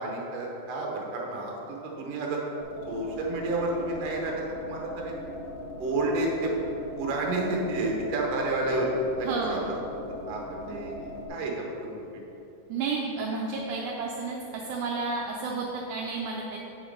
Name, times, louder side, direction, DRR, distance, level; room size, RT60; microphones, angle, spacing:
voice 1, 0.0-2.4 2.9-5.1 5.8-6.5 7.0-8.9 9.2-9.7 10.3-12.1, right 2 dB, 65° right, -1 dB, 1.7 m, -30 dB
sound 1, 2.6-11.3, left 1 dB, 65° left, 1.6 m, -40 dB
voice 2, 9.2-9.7 12.7-16.6, right 4 dB, 80° right, -2 dB, 1.8 m, -31 dB
8.0 x 4.9 x 5.1 m, 3.0 s
omnidirectional pair, 4.2 m